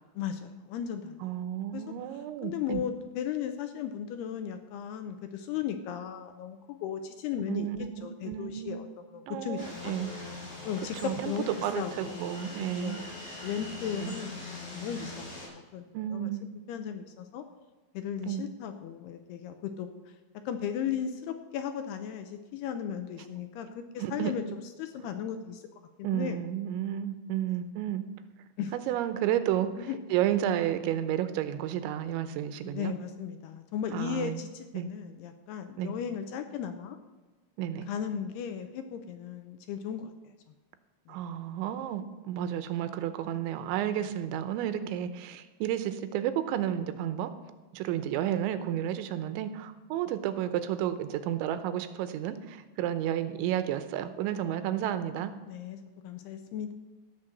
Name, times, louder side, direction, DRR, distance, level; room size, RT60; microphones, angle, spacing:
voice 1, 0.2-1.2 1.7-1.8 2.4-7.7 8.0-9.9 10.7-12.4 12.8-13.2 13.4-14.4 14.7-16.3 16.7-17.4 17.9-19.9 20.3-24.4 24.8-25.6 26.1-26.4 28.6-28.7 29.8-30.0 32.6-37.0 37.9-40.1 41.1-41.2 55.5-56.7, left 8 dB, 80° left, 7 dB, 2.4 m, -36 dB
voice 2, 1.2-2.8 7.5-8.9 9.3-10.1 11.0-13.0 14.0-14.1 15.9-16.5 18.2-18.4 24.0-24.3 25.0-25.2 26.0-28.0 28.9-32.9 33.9-34.4 34.7-34.9 35.8-35.9 37.6-37.9 41.1-47.3 47.7-55.3, right 11 dB, 85° right, 11 dB, 3.1 m, -32 dB
sound 1, 9.6-15.5, left 2 dB, 45° left, 7.0 m, -42 dB
16.5 x 6.3 x 7.7 m, 1.3 s
omnidirectional pair, 5.3 m